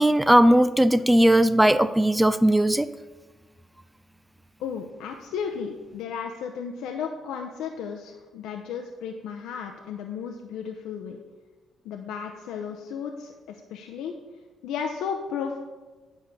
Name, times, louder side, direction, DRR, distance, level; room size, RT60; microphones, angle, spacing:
voice 1, 0.0-2.9, right 1 dB, 5° right, 13 dB, 0.4 m, -18 dB
voice 2, 4.6-11.2 11.8-14.1 14.6-15.6, left 7 dB, 90° left, 3 dB, 0.7 m, -34 dB
9.7 x 3.7 x 7.0 m, 1.2 s
cardioid pair, 90°, 0 cm